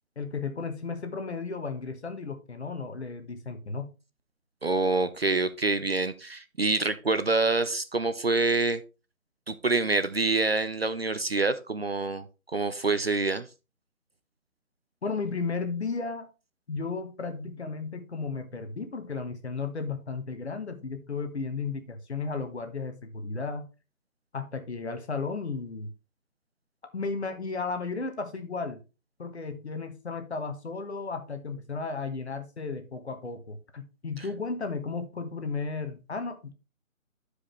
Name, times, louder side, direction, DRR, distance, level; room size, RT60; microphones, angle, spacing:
voice 1, 0.2-3.9 15.0-16.3 16.7-23.7 24.3-25.9 26.9-28.8 29.2-36.5, left 4 dB, 55° left, 1.2 m, -34 dB
voice 2, 4.6-8.8 9.5-12.3 12.5-13.5 34.2-34.3, right 3 dB, 50° right, 0.5 m, -26 dB
11.0 x 4.9 x 3.1 m
figure-of-eight pair, 170°, 40 cm